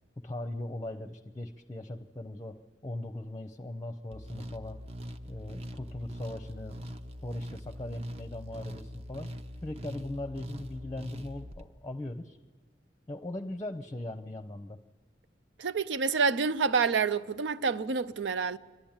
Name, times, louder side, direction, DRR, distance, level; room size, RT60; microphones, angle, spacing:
voice 1, 0.2-4.8 5.2-6.9 7.2-9.3 9.6-12.4 13.1-14.8, left 1 dB, 20° left, 0.6 m, -39 dB
sound 1, 4.1-11.6, equal, 35° right, 0.8 m, -42 dB
voice 2, 15.6-18.6, right 5 dB, 90° right, 0.6 m, -28 dB
28.5 x 12.0 x 8.8 m
head